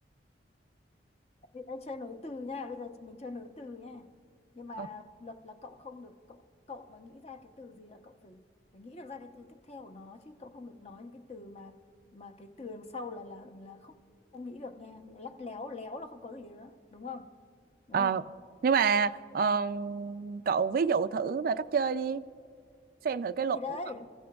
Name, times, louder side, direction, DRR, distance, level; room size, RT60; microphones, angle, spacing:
voice 1, 1.5-4.1 4.5-8.4 8.7-11.8 12.1-13.9 14.3-17.3 17.9-18.2 23.5-24.1, left 3 dB, 35° left, 0.8 m, -43 dB
voice 2, 18.6-22.2 23.0-23.6, right 6 dB, 55° right, 0.3 m, -28 dB
28.0 x 15.0 x 2.3 m
head